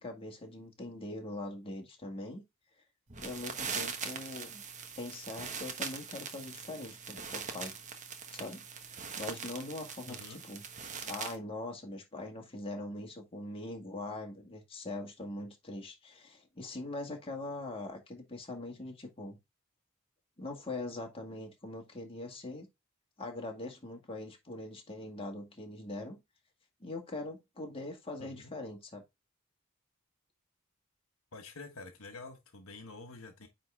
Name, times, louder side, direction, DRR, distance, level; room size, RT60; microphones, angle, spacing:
voice 1, 0.0-2.4 3.2-4.6 5.0-7.8 8.3-10.6 11.0-19.4 20.4-22.7 23.2-26.2 26.8-29.0, left 2 dB, 25° left, 1.9 m, -42 dB
sound 1, 3.1-11.4, right 6 dB, 35° right, 1.1 m, -41 dB
voice 2, 10.1-10.4 28.2-28.5 31.3-33.5, left 3 dB, 70° left, 1.3 m, -48 dB
9.4 x 3.8 x 3.5 m
head